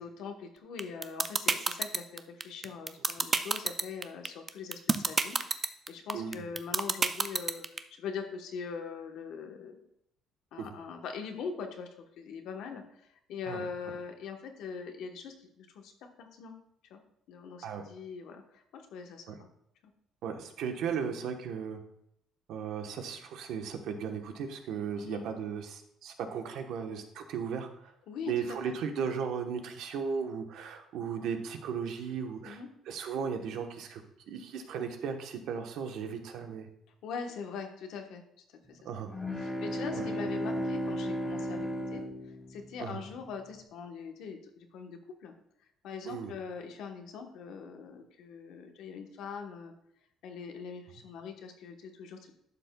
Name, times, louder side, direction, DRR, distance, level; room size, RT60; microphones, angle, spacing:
voice 1, 0.0-9.8 10.5-12.8 13.1-15.9 16.2-16.5 16.9-17.0 17.3-19.5 25.0-25.3 28.1-28.7 32.4-32.7 37.0-38.2 38.7-45.3 45.8-49.7 50.2-52.3, left 5 dB, 75° left, 4 dB, 1.1 m, -42 dB
sound 1, 0.8-7.8, right 4 dB, 25° right, 0.4 m, -27 dB
voice 2, 6.1-6.4 10.6-10.7 13.5-13.6 17.6-17.8 19.3-19.4 20.2-21.8 22.5-27.9 28.3-32.6 32.9-34.0 34.3-36.7 38.8-39.1 39.9-40.1 42.8-43.0 46.1-46.3, right 6 dB, 75° right, 5 dB, 1.0 m, -36 dB
sound 2, 39.0-43.1, equal, 10° left, 1.1 m, -35 dB
11.5 x 6.9 x 2.3 m, 0.74 s
cardioid pair, 125°, 0 cm